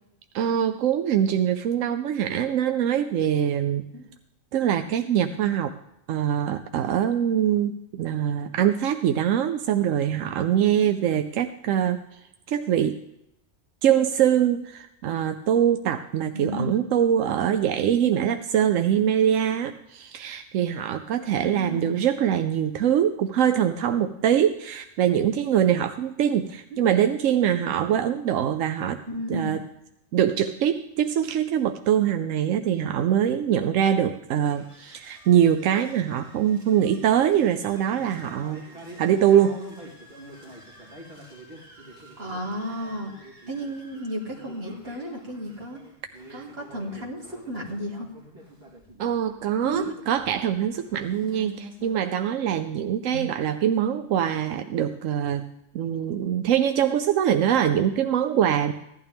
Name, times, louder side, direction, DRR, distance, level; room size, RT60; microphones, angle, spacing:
voice 1, 0.3-3.9 4.5-5.7 6.1-12.2 12.5-13.0 13.8-29.0 29.3-29.6 30.1-38.7 39.0-39.6 46.3-46.4 49.0-55.5 55.7-58.7, right 9 dB, 85° right, 8 dB, 1.0 m, -23 dB
voice 2, 16.3-16.7 21.4-21.9 26.7-26.9 29.1-29.6 42.2-43.1 43.5-45.8 46.3-48.1 49.6-49.9 53.1-53.3, equal, 50° right, -2 dB, 2.8 m, -33 dB
sound 1, 34.4-52.2, right 1 dB, 35° right, 3.7 m, -47 dB
16.0 x 11.5 x 3.5 m, 0.83 s
omnidirectional pair, 1.3 m